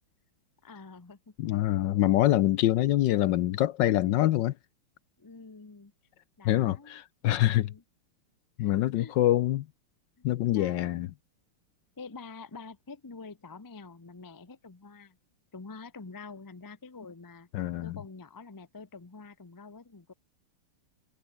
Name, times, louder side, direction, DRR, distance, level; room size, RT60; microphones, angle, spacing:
voice 1, 0.6-1.5 5.2-5.9 6.4-7.0 7.3-7.8 8.6-9.2 10.5-11.0 12.0-15.2 15.5-17.5 17.8-20.1, left 4 dB, 30° left, 0.4 m, -47 dB
voice 2, 1.4-4.5 6.4-7.7 8.6-9.7 10.2-11.1 17.5-18.0, left 14 dB, 70° left, 1.2 m, -25 dB
omnidirectional pair, 2.3 m